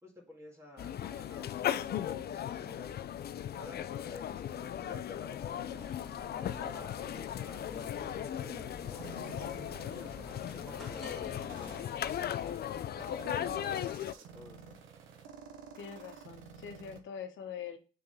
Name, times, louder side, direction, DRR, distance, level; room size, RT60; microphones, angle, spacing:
voice 1, 0.0-3.0 3.5-9.1 9.8-14.8, left 2 dB, 15° right, -3 dB, 2.0 m, -53 dB
sound 1, 0.8-14.1, left 10 dB, 55° left, 0.5 m, -37 dB
sound 2, 5.4-12.3, left 1 dB, ahead, 2.0 m, -50 dB
sound 3, 9.0-17.0, right 6 dB, 85° right, 1.0 m, -51 dB
voice 2, 15.7-17.8, left 7 dB, 70° left, 7 dB, 1.2 m, -43 dB
6.8 x 3.9 x 4.0 m, 0.36 s
cardioid pair, 90°, 20 cm